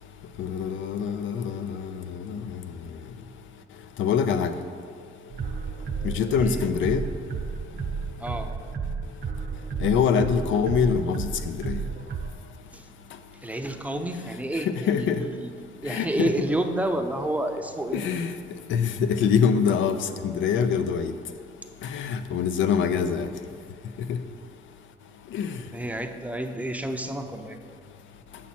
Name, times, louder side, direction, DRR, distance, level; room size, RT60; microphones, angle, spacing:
voice 1, 0.4-2.5 4.0-4.5 6.0-7.0 9.8-11.8 14.7-15.2 15.9-16.3 17.9-18.3 18.7-21.1 21.8-23.3 24.1-24.2 25.3-25.6, left 7 dB, 75° left, 9 dB, 0.5 m, -24 dB
sound 1, 5.3-12.3, right 5 dB, 55° right, 0.8 m, -32 dB
voice 2, 8.2-8.5 12.7-12.9 13.4-15.5 15.8-18.0 25.7-27.6, right 1 dB, 5° right, 5 dB, 0.6 m, -29 dB
7.3 x 6.1 x 4.3 m, 2.2 s
cardioid pair, 90°, 20 cm